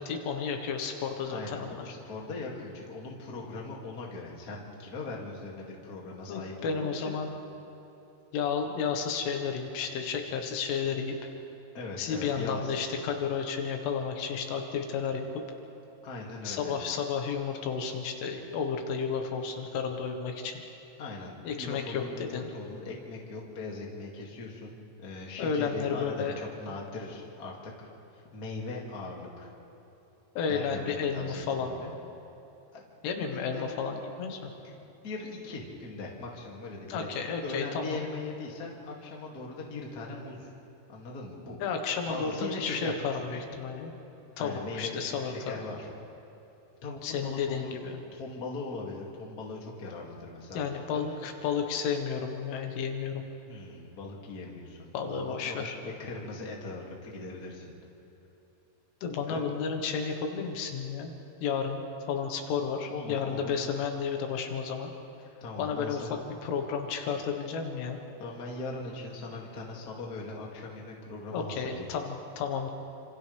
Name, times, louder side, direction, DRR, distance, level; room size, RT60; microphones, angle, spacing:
voice 1, 0.0-1.9 6.3-7.3 8.3-11.2 12.0-15.4 16.5-20.6 21.5-22.0 22.3-22.5 25.4-26.4 30.4-31.8 33.0-34.5 36.9-38.0 41.6-43.9 44.4-45.6 47.0-48.0 50.5-53.2 54.9-55.8 59.0-61.1 61.4-64.9 65.6-66.1 66.4-68.0 71.3-72.7, left 6 dB, 80° left, 4 dB, 4.0 m, -32 dB
voice 2, 1.2-7.1 11.7-12.9 16.0-16.8 21.0-29.5 30.5-31.9 32.7-32.8 33.3-33.6 34.4-40.5 40.9-41.6 42.1-43.4 44.4-45.9 46.8-47.8 48.1-50.7 53.5-57.7 59.3-59.4 62.9-63.5 65.4-66.2 68.2-71.9, left 3 dB, 30° left, -2 dB, 2.0 m, -40 dB
29.5 x 26.5 x 3.5 m, 2.9 s
omnidirectional pair, 5.6 m